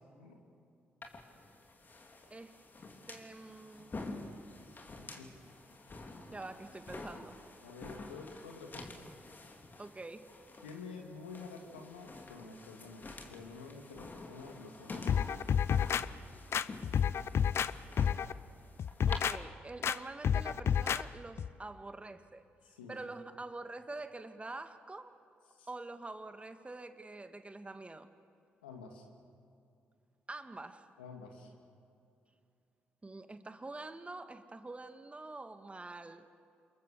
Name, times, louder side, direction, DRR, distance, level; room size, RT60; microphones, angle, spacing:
sound 1, 1.0-19.2, left 2 dB, 40° left, 3.1 m, -49 dB
voice 1, 3.1-4.0 6.3-7.4 9.8-10.3 19.1-22.4 22.9-25.2 25.7-28.1 30.3-30.9 33.0-36.3, right 2 dB, 25° right, 9 dB, 1.8 m, -46 dB
voice 2, 5.0-5.4 7.6-9.1 10.6-15.3 22.6-23.0 25.5-25.7 28.6-29.0 31.0-31.5, left 4 dB, 90° left, 3 dB, 2.2 m, -49 dB
sound 2, 15.1-16.0 16.5-17.7 18.0-18.3 18.8-19.4 19.8-20.0 20.2-21.0 21.4-21.5, left 8 dB, 55° left, 0.6 m, -30 dB
28.0 x 22.5 x 7.0 m, 2.5 s
hypercardioid pair, 40°, 5 cm